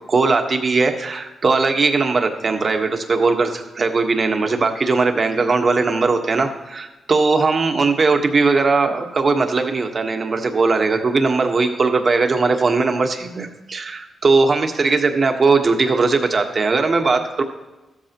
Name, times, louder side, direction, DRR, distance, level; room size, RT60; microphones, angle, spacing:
voice 1, 0.1-17.4, right 4 dB, 40° right, 5 dB, 1.4 m, -19 dB
14.5 x 13.5 x 3.0 m, 1.1 s
cardioid pair, 100°, 0 cm